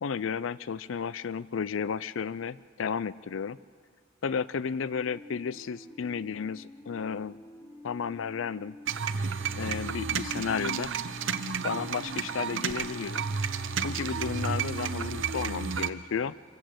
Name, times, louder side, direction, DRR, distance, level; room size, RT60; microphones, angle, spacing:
voice 1, 0.0-3.6 4.2-7.4 7.8-8.8 9.5-10.9 11.6-13.3 13.8-16.3, left 6 dB, 80° left, 18 dB, 0.5 m, -33 dB
sound 1, 4.9-15.3, left 1 dB, 15° left, 1.4 m, -49 dB
sound 2, 8.9-15.9, right 6 dB, 75° right, 0.8 m, -32 dB
25.0 x 15.0 x 7.9 m, 2.1 s
head